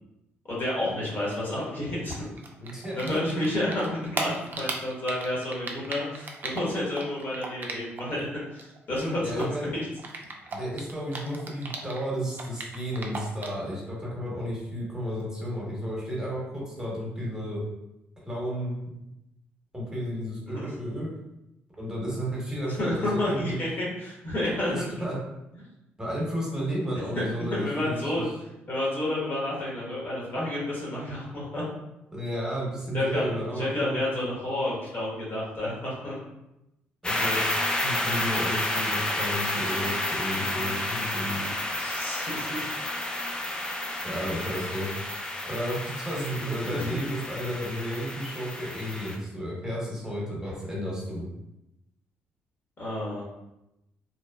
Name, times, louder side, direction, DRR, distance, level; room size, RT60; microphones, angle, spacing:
voice 1, 0.4-2.3 3.0-9.8 10.5-10.6 20.5-20.8 22.8-25.0 27.1-28.3 28.7-31.6 32.9-36.1 41.6-42.7 46.7-46.9 52.8-53.2, left 1 dB, 45° left, -6 dB, 1.1 m, -30 dB
Typing, 2.0-8.2 8.5-12.0 12.3-13.6, right 3 dB, 45° right, 0.4 m, -36 dB
voice 2, 2.6-3.2 9.2-9.7 10.5-17.6 18.3-18.7 19.7-21.1 21.8-23.6 24.7-25.2 26.0-28.2 32.1-34.0 37.0-41.4 44.0-44.9 45.5-51.3, equal, 15° right, -5 dB, 1.0 m, -32 dB
sound 1, 37.0-49.2, left 1 dB, 20° left, 0.4 m, -30 dB
2.9 x 2.0 x 2.2 m, 0.89 s
cardioid pair, 75°, 5 cm